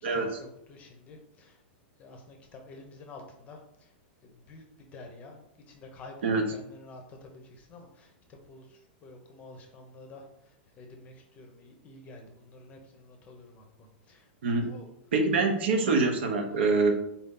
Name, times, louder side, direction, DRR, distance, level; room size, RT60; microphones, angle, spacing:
voice 1, 0.1-1.6 2.0-3.9 4.2-14.9 15.8-15.9 16.4-16.8, left 2 dB, 25° left, 3 dB, 0.7 m, -50 dB
voice 2, 15.1-16.9, right 3 dB, 75° right, 5 dB, 0.8 m, -25 dB
4.1 x 2.7 x 3.7 m, 0.79 s
supercardioid pair, 150°, 6 cm